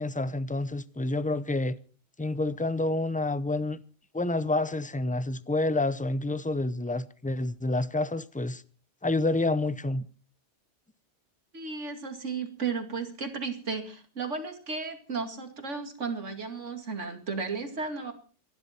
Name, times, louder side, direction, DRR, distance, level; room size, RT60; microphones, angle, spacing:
voice 1, 0.0-1.7 2.2-3.8 4.1-8.6 9.0-10.1, left 2 dB, 10° left, 0.5 m, -28 dB
voice 2, 11.5-18.1, right 4 dB, 80° right, 2.7 m, -34 dB
25.0 x 11.5 x 4.4 m
omnidirectional pair, 1.2 m